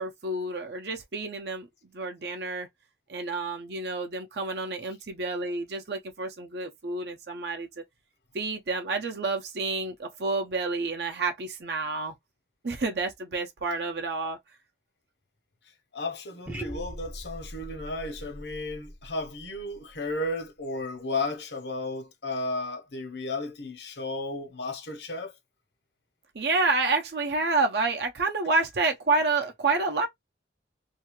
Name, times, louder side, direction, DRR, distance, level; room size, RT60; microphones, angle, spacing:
voice 1, 0.0-1.7 1.9-2.7 3.1-7.8 8.3-12.1 12.6-14.4 26.3-30.1, right 3 dB, 65° right, 0.7 m, -29 dB
voice 2, 15.9-25.3, left 2 dB, 75° left, 0.9 m, -34 dB
sound 1, 16.5-20.6, right 1 dB, 10° right, 0.5 m, -42 dB
2.7 x 2.4 x 2.9 m
head